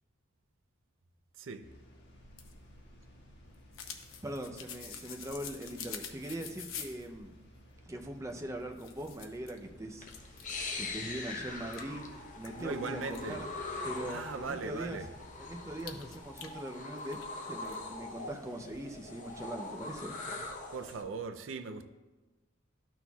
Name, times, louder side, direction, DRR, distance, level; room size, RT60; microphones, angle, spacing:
voice 1, 1.4-1.7 12.6-13.4 14.0-15.1 20.7-21.9, right 4 dB, 70° right, 0.5 m, -39 dB
sound 1, 1.6-16.2, equal, 60° left, 1.4 m, -56 dB
sound 2, 2.2-7.1 8.3-8.4 8.7-9.6 10.1-10.7 11.1-11.2 11.7-13.2 15.8-17.3 17.6-17.8, left 7 dB, 90° left, 0.7 m, -46 dB
voice 2, 4.2-7.3 7.8-12.0 12.4-13.5 13.8-15.0 15.4-17.2 17.5-20.2, right 1 dB, 15° right, 0.5 m, -41 dB
sound 3, 10.0-21.0, left 3 dB, 40° left, 0.8 m, -42 dB
12.5 x 6.0 x 2.3 m
head